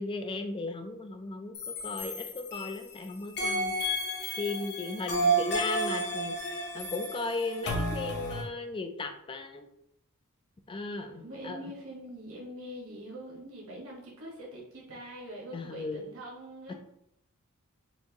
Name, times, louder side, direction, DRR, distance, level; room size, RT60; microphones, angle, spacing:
voice 1, 0.0-3.7 4.4-9.7 10.7-11.7 15.5-16.0 16.7-16.8, left 3 dB, 25° left, 6 dB, 0.4 m, -36 dB
sound 1, 1.5-2.9 3.4-8.4, right 1 dB, 50° left, 0.8 m, -31 dB
voice 2, 5.1-5.4 11.1-16.7, equal, 65° right, -3 dB, 1.3 m, -44 dB
4.4 x 2.6 x 2.9 m, 0.77 s
head